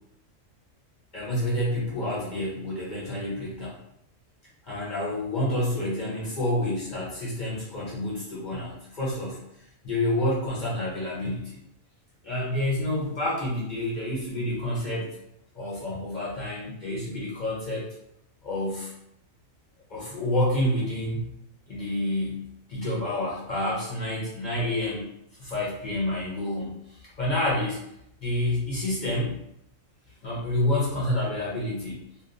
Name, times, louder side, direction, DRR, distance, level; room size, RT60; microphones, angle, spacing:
voice 1, 1.1-3.7 4.6-9.4 9.8-11.6 12.2-15.1 15.5-17.9 18.4-18.9 19.9-21.3 21.7-22.4 22.7-25.1 25.4-27.8 28.2-29.4 30.2-32.0, left 1 dB, 45° left, -6 dB, 0.7 m, -28 dB
2.8 x 2.3 x 2.5 m, 0.80 s
omnidirectional pair, 1.4 m